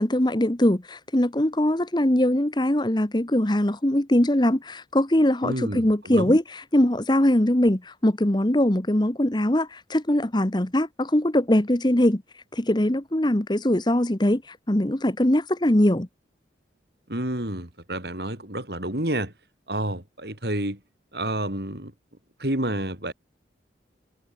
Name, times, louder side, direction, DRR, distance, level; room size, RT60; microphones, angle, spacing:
voice 1, 0.0-12.2 12.5-16.1, left 1 dB, 25° left, 1.2 m, -22 dB
voice 2, 5.4-6.4 17.1-19.3 19.7-20.8 21.1-21.9 22.4-23.1, right 1 dB, 60° right, 4.4 m, -29 dB
head